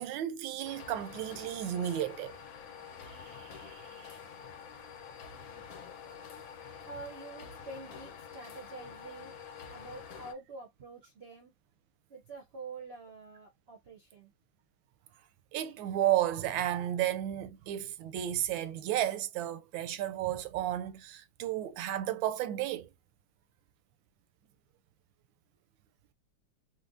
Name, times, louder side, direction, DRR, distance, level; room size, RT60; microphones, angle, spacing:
voice 1, 0.0-2.4 3.1-4.2 15.5-22.9, right 12 dB, 85° right, 1.3 m, -33 dB
sound 1, 0.6-10.3, left 7 dB, 90° left, 1.6 m, -47 dB
voice 2, 6.8-9.3 9.7-11.5 12.1-14.3, right 3 dB, 65° right, 0.6 m, -47 dB
4.3 x 2.1 x 2.5 m
omnidirectional pair, 2.1 m